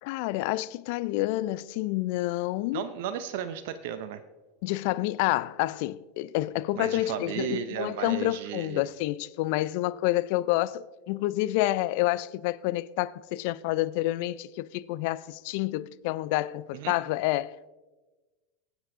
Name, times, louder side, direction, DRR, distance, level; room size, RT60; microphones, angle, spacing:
voice 1, 0.0-2.8 4.6-17.7, left 16 dB, 60° left, 0.4 m, -28 dB
voice 2, 2.7-4.2 6.8-8.8 16.7-16.9, right 9 dB, 65° right, 0.6 m, -34 dB
21.0 x 8.0 x 2.6 m
hypercardioid pair, 90°, 0 cm